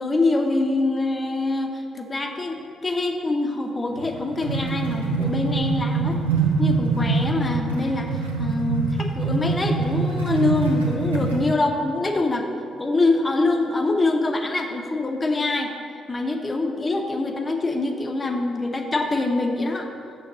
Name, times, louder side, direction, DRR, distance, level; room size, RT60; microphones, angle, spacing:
voice 1, 0.0-6.2 6.6-8.1 8.4-12.5 12.8-15.7 16.1-19.9, left 2 dB, 30° left, 3 dB, 0.9 m, -24 dB
sound 1, 4.0-11.5, right 4 dB, 85° right, 0.7 m, -24 dB
6.9 x 4.9 x 6.8 m, 2.4 s
figure-of-eight pair, 40°, 0 cm